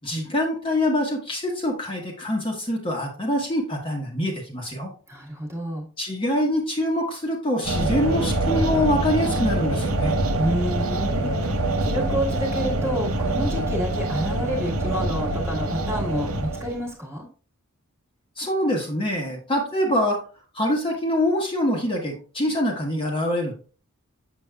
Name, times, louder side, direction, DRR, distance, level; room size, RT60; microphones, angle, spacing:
voice 1, 0.0-4.9 6.0-10.2 18.4-20.2 20.5-23.6, left 1 dB, 25° left, 0 dB, 1.1 m, -25 dB
voice 2, 5.1-5.8 10.4-17.3, equal, 10° right, -2 dB, 1.5 m, -29 dB
sound 1, 7.6-16.9, right 1 dB, 70° right, 0.9 m, -25 dB
7.0 x 6.4 x 2.3 m, 0.38 s
head